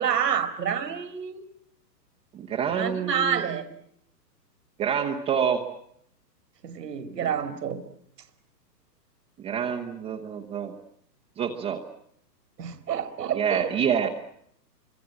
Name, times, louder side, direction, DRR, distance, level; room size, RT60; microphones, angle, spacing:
voice 1, 0.0-1.4 2.7-3.6 6.6-7.8 12.6-13.7, right 8 dB, 70° right, 8 dB, 2.8 m, -28 dB
voice 2, 2.3-3.4 4.8-5.7 7.2-7.4 9.4-10.7 11.4-11.8 13.3-14.1, right 8 dB, 10° right, 1 dB, 1.0 m, -27 dB
26.0 x 25.0 x 7.6 m, 0.70 s
hypercardioid pair, 150°, 50 cm